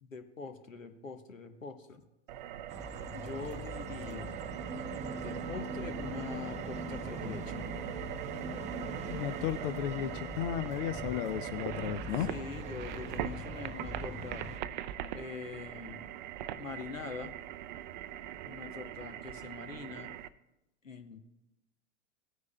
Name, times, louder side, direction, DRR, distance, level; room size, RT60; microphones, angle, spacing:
voice 1, 0.0-2.0 3.1-4.3 5.1-7.6 12.3-14.5 15.1-16.1 16.6-17.3 18.4-20.1 20.8-21.2, left 4 dB, 80° left, 8 dB, 1.0 m, -43 dB
sound 1, 2.3-20.3, right 11 dB, 40° right, 0.4 m, -42 dB
sound 2, 2.7-14.6, right 2 dB, 20° right, 0.8 m, -42 dB
voice 2, 9.1-12.3, left 11 dB, 45° left, 13 dB, 0.5 m, -34 dB
18.0 x 9.5 x 2.2 m, 0.94 s
figure-of-eight pair, 95°, 39 cm